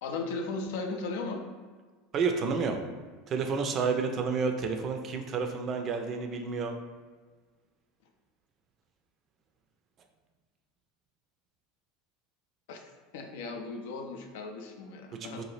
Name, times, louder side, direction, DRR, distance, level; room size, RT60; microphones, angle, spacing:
voice 1, 0.0-1.4 12.7-15.4, left 3 dB, 70° left, 4 dB, 0.4 m, -37 dB
voice 2, 2.1-2.8 3.3-6.7 15.2-15.4, right 5 dB, 40° right, 5 dB, 0.4 m, -30 dB
2.8 x 2.4 x 3.1 m, 1.5 s
hypercardioid pair, 80°, 0 cm